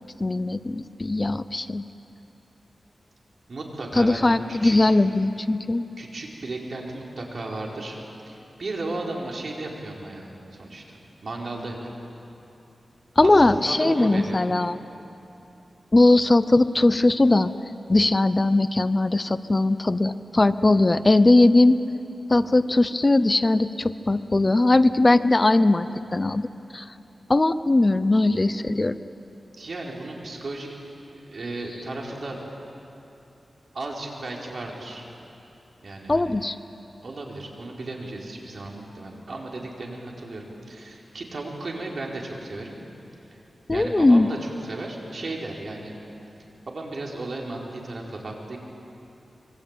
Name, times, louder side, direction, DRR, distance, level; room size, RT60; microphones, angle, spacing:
voice 1, 0.2-1.8 3.9-5.8 13.2-14.8 15.9-17.5 17.9-21.8 22.3-26.5 26.7-26.8 27.3-29.0 36.1-36.6 43.7-44.3, left 2 dB, 30° left, 13 dB, 0.7 m, -19 dB
voice 2, 3.5-4.9 6.0-8.0 8.3-10.8 11.2-11.9 13.2-14.4 29.6-30.8 31.1-32.4 33.7-35.0 35.8-36.4 37.0-42.8 43.7-45.9 46.7-48.6, right 2 dB, 65° right, -1 dB, 4.6 m, -35 dB
26.0 x 23.0 x 9.0 m, 3.0 s
wide cardioid pair, 85°, 0 cm